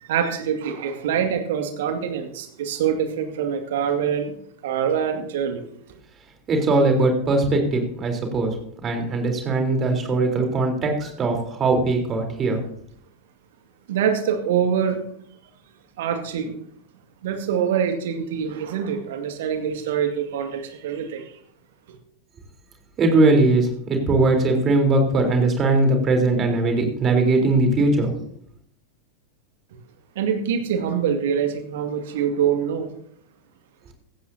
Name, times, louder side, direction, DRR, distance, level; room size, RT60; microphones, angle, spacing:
voice 1, 0.0-4.3 4.6-5.6 13.9-15.0 16.0-16.5 17.2-21.2 21.9-22.0 30.2-32.9, right 8 dB, 55° right, 5 dB, 2.2 m, -24 dB
voice 2, 6.5-8.5 8.8-12.6 23.0-28.1, right 2 dB, 25° right, 3 dB, 3.8 m, -20 dB
16.0 x 15.5 x 2.8 m, 0.64 s
figure-of-eight pair, 90°, 0 cm